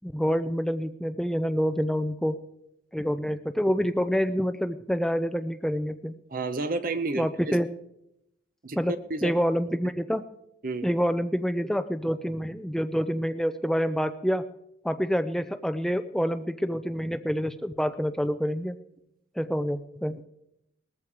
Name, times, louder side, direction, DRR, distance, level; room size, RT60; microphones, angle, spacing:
voice 1, 0.0-2.4 2.9-6.1 7.1-7.7 8.8-10.2 10.8-14.4 14.8-18.8 19.4-20.2, equal, ahead, 9 dB, 0.5 m, -27 dB
voice 2, 6.3-7.6 8.6-9.4 10.6-10.9, right 3 dB, 45° right, 10 dB, 0.9 m, -31 dB
20.0 x 14.5 x 4.8 m, 0.82 s
head